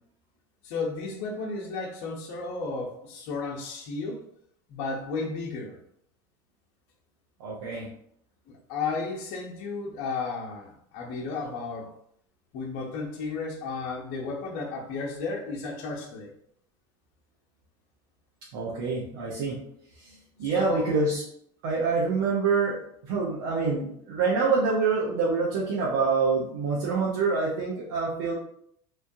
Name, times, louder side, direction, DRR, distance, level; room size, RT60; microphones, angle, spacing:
voice 1, 0.6-4.2 4.7-5.8 8.5-11.9 12.5-16.3 20.5-20.9, left 4 dB, 70° left, 0 dB, 0.7 m, -33 dB
voice 2, 7.4-7.9 18.5-19.6 20.0-21.2 21.6-22.8 23.0-28.3, right 4 dB, 85° right, -6 dB, 0.7 m, -26 dB
3.1 x 2.2 x 2.7 m, 0.69 s
supercardioid pair, 110°, 11 cm